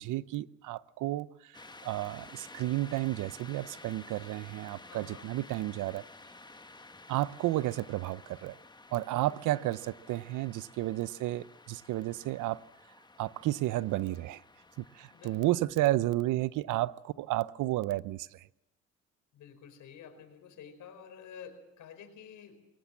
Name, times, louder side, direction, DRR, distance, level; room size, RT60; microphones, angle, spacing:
voice 1, 0.0-1.6 1.8-6.0 7.1-8.6 8.9-12.6 13.2-14.4 14.9-18.5, right 16 dB, 90° right, 18 dB, 0.7 m, -32 dB
sound 1, 1.5-15.5, left 2 dB, 15° left, 1.2 m, -53 dB
voice 2, 4.9-5.3 9.1-9.7 15.1-15.7 19.3-22.6, left 7 dB, 80° left, 8 dB, 4.8 m, -50 dB
22.0 x 19.0 x 7.5 m, 0.88 s
cardioid pair, 90°, 30 cm